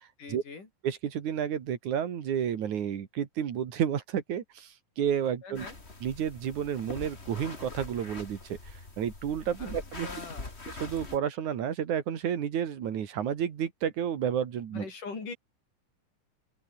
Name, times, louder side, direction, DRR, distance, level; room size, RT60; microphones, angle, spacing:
voice 1, 0.2-0.7 5.4-5.8 9.6-9.7 10.0-10.5 14.7-15.3, left 4 dB, 80° left, 7.7 m, -41 dB
voice 2, 0.8-5.7 6.0-10.1 10.7-14.9, right 9 dB, 70° right, 3.4 m, -31 dB
sound 1, 5.5-11.2, left 3 dB, 20° left, 3.0 m, -43 dB
open air
omnidirectional pair, 3.6 m